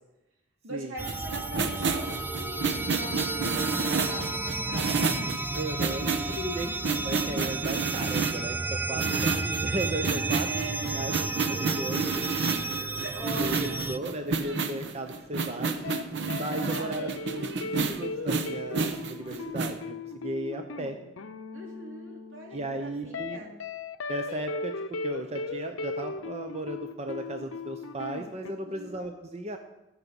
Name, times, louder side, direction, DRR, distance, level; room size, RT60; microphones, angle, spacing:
voice 1, 0.6-5.3 6.2-7.0 10.5-11.2 12.7-13.8 16.5-17.2 19.2-19.7 21.5-23.5 28.4-29.0, equal, 80° right, -1 dB, 3.1 m, -41 dB
sound 1, 1.0-14.0, right 3 dB, 10° right, 0.3 m, -32 dB
sound 2, 1.1-8.4 8.9-19.8, right 4 dB, 65° right, 0.9 m, -30 dB
voice 2, 5.5-6.1 6.4-6.7 7.0-12.2 13.4-15.8 16.4-21.0 22.5-23.4 24.1-24.7 25.0-29.6, right 1 dB, 35° right, 5 dB, 0.7 m, -36 dB
sound 3, 15.8-16.0 16.3-28.5, left 3 dB, 75° left, 0.6 m, -37 dB
14.5 x 6.1 x 7.0 m, 0.98 s
head